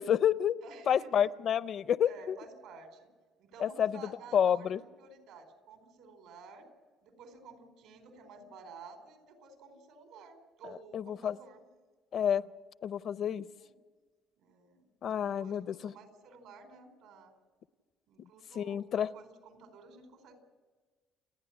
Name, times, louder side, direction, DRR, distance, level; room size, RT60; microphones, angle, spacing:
voice 1, 0.0-0.6 0.9-2.4 3.6-3.9 4.3-4.8 10.9-11.4 12.1-12.4 12.8-13.5 15.0-15.9 18.6-19.1, left 9 dB, 45° left, 16 dB, 0.5 m, -29 dB
voice 2, 0.6-1.1 2.0-3.1 3.4-6.7 7.0-11.7 13.6-13.7 14.4-17.3 18.1-20.4, right 4 dB, 80° right, 6 dB, 4.3 m, -53 dB
29.5 x 10.0 x 10.0 m, 1.4 s
cardioid pair, 145°, 0 cm